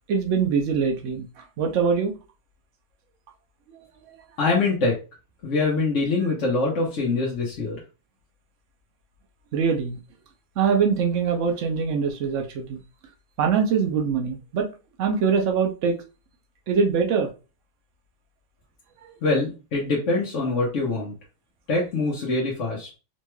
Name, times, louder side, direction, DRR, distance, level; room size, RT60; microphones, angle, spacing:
voice 1, 0.1-1.3 1.6-2.1 3.7-3.8 4.1-4.2 9.5-10.0 10.6-12.8 13.4-14.7 15.0-16.0 16.7-17.3, right 6 dB, 85° right, 1.0 m, -23 dB
voice 2, 4.4-5.0 5.4-7.8 19.2-21.1 21.7-22.9, left 3 dB, 85° left, 1.3 m, -24 dB
4.2 x 3.0 x 2.2 m
omnidirectional pair, 1.2 m